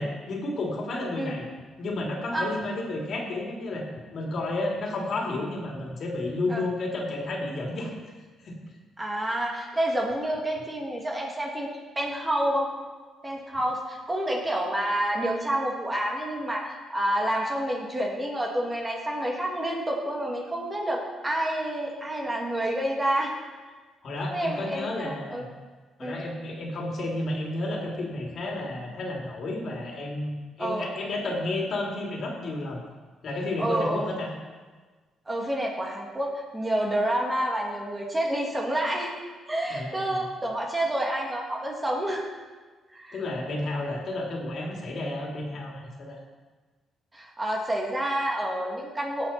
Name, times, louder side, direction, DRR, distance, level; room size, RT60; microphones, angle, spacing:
voice 1, 0.0-1.4 1.8-3.9 4.1-7.9 8.4-8.5 24.0-25.5 26.0-32.8 33.2-34.3 39.7-40.3 43.1-46.2, left 2 dB, 60° left, -1 dB, 2.9 m, -31 dB
voice 2, 9.0-11.7 12.0-12.7 13.2-23.3 24.3-25.4 26.0-26.2 30.6-30.9 33.6-34.1 35.3-39.1 39.5-42.3 42.9-43.2 47.1-49.3, right 1 dB, 20° right, -1 dB, 2.5 m, -28 dB
16.5 x 7.5 x 4.4 m, 1.4 s
cardioid pair, 90°, 0 cm